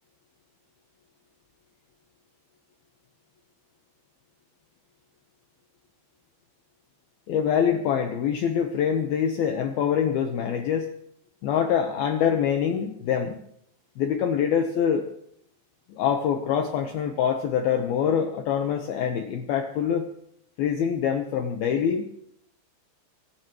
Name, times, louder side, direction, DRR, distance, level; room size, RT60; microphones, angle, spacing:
voice 1, 7.3-11.0 11.4-13.4 14.0-15.1 15.9-20.1 20.6-22.1, left 8 dB, 85° left, 4 dB, 2.1 m, -25 dB
24.0 x 16.0 x 3.1 m, 0.69 s
omnidirectional pair, 5.9 m